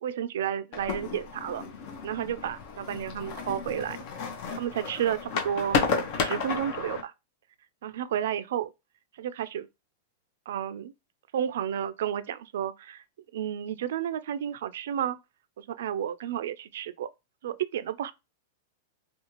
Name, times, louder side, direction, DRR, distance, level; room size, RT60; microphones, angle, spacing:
voice 1, 0.0-1.6 2.0-4.0 4.5-5.8 6.2-7.1 7.8-8.7 9.2-9.7 10.5-10.9 11.3-13.0 13.3-15.2 15.6-17.1 17.4-18.1, right 10 dB, 75° right, 0.3 m, -31 dB
sound 1, 0.7-7.0, left 5 dB, 50° left, 0.6 m, -32 dB
2.5 x 2.3 x 2.9 m
hypercardioid pair, 140°, 0 cm